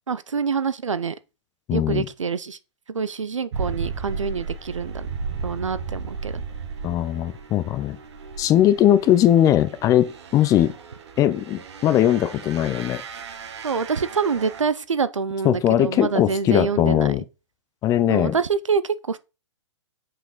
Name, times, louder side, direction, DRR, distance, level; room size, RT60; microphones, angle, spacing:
voice 1, 0.1-1.2 1.7-2.6 2.9-5.1 5.4-6.4 13.6-17.1 18.1-19.2, right 5 dB, 90° right, 0.6 m, -26 dB
voice 2, 1.7-2.1 6.8-8.0 8.4-10.7 11.2-13.0 15.4-17.2 17.8-18.3, left 12 dB, 20° left, 0.5 m, -20 dB
sound 1, 3.5-14.6, right 5 dB, 65° right, 1.3 m, -35 dB
5.8 x 5.1 x 3.9 m
hypercardioid pair, 120°, 16 cm